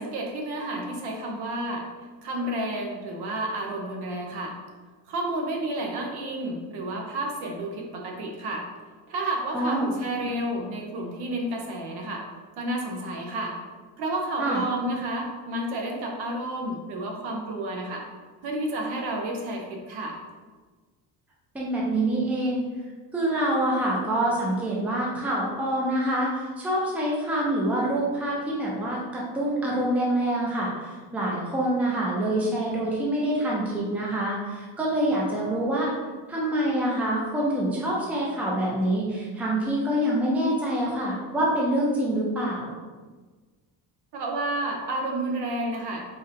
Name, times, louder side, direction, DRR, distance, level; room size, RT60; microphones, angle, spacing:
voice 1, 0.0-1.9 2.2-4.6 5.1-8.7 9.1-12.2 12.6-13.6 14.0-18.0 18.4-20.2 44.1-46.1, right 1 dB, 65° right, 1 dB, 0.9 m, -31 dB
voice 2, 9.5-9.9 14.4-14.6 21.5-22.6 23.1-35.9 36.3-42.7, right 1 dB, 5° right, -4 dB, 0.5 m, -26 dB
4.0 x 3.9 x 2.6 m, 1.3 s
cardioid pair, 170°, 42 cm